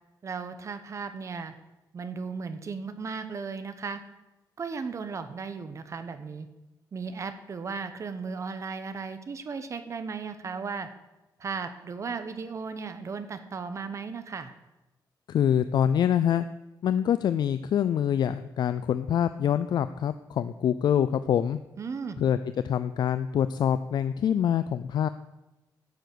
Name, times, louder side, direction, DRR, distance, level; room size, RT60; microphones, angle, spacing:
voice 1, 0.2-1.5 1.9-4.0 4.6-6.5 6.9-10.9 11.4-14.5 21.8-22.2, right 5 dB, 40° right, 10 dB, 1.0 m, -36 dB
voice 2, 15.3-16.5 16.8-21.6 22.2-22.4 22.6-25.1, left 9 dB, 65° left, 13 dB, 0.4 m, -25 dB
10.5 x 7.0 x 8.0 m, 1.0 s
wide cardioid pair, 155°, 8 cm